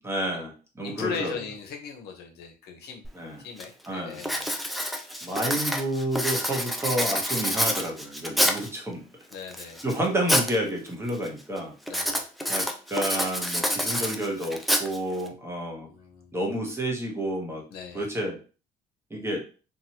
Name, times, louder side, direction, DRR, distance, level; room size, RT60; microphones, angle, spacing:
voice 1, 0.0-1.4 3.1-3.4 3.9-4.2 5.2-9.0 9.6-11.7 12.5-15.9 16.3-17.6 17.9-18.4 19.1-19.5, right 1 dB, 15° right, 0 dB, 0.9 m, -30 dB
voice 2, 0.8-3.1 3.4-4.5 9.3-9.8 11.9-12.2 15.8-16.3 17.7-18.1, left 6 dB, 75° left, 3 dB, 0.8 m, -38 dB
Writing, 3.0-3.1 3.6-3.9 4.2-8.8 9.3-10.6 10.9-11.3 11.9-15.3, equal, ahead, 0.4 m, -27 dB
2.9 x 2.3 x 2.8 m, 0.35 s
cardioid pair, 110°, 17 cm